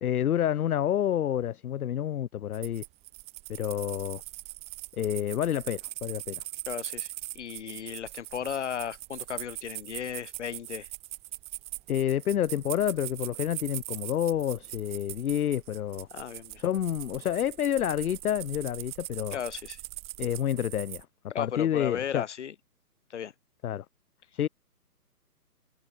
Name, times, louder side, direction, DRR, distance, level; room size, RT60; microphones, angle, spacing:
voice 1, 0.0-2.8 3.5-4.2 5.0-6.4 11.9-16.1 16.6-19.4 20.2-21.1 21.4-22.2 23.6-23.8 24.3-24.5, left 10 dB, 65° left, 0.6 m, -29 dB
sound 1, 2.5-21.0, right 20 dB, 10° right, 2.5 m, -41 dB
voice 2, 6.7-10.9 16.1-16.6 19.3-19.8 21.3-22.5 23.1-23.3, left 8 dB, 45° left, 1.6 m, -35 dB
hypercardioid pair, 170°, 48 cm